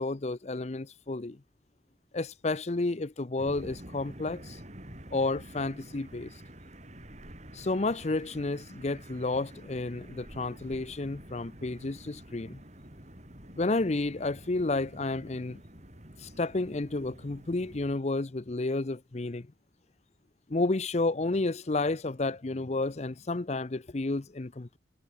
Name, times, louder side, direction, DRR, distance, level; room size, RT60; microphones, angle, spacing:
voice 1, 0.0-1.4 2.1-4.6 5.1-6.3 7.5-12.6 13.6-15.6 16.2-19.5 20.5-24.8, left 2 dB, 35° left, 0.7 m, -31 dB
sound 1, 3.4-18.0, right 1 dB, 40° right, 5.4 m, -48 dB
head